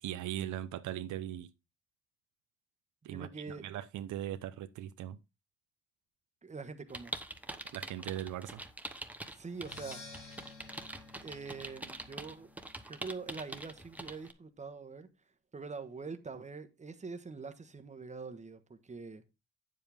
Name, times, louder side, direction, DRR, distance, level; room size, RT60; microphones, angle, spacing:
voice 1, 0.0-1.5 3.0-5.2 7.7-8.6, right 12 dB, 75° right, 0.7 m, -39 dB
voice 2, 3.0-3.7 6.4-7.1 9.3-10.0 11.2-12.5 12.9-15.1 15.5-19.2, right 4 dB, 25° right, 1.2 m, -44 dB
sound 1, 6.9-14.3, right 1 dB, 5° right, 1.0 m, -44 dB
Percussion, 9.5-13.3, left 3 dB, 85° left, 3.1 m, -53 dB
8.6 x 7.4 x 3.4 m
cardioid pair, 90°, 30 cm